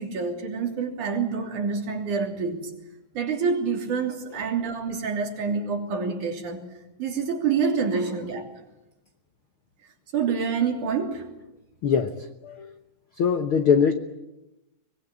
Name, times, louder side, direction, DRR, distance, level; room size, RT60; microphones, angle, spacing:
voice 1, 0.0-2.7 3.1-6.6 7.0-8.5 10.1-11.3, right 5 dB, 60° right, 3 dB, 4.5 m, -27 dB
voice 2, 11.8-12.1 12.4-12.7 13.2-13.9, left 6 dB, 70° left, 8 dB, 1.2 m, -21 dB
24.0 x 21.0 x 8.7 m, 0.94 s
omnidirectional pair, 4.0 m